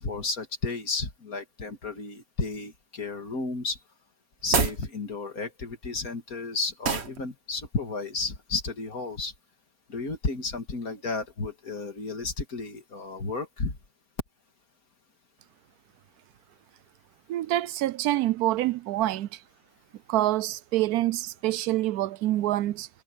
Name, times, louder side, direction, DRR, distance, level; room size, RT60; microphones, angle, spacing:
voice 1, 0.0-3.8 4.4-9.3 9.9-13.8, left 3 dB, 70° left, 2.7 m, -32 dB
sound 1, 4.4-4.9 6.8-7.2, right 5 dB, 45° right, 1.5 m, -25 dB
voice 2, 17.3-19.3 20.1-22.9, right 15 dB, 90° right, 1.1 m, -26 dB
omnidirectional pair, 1.6 m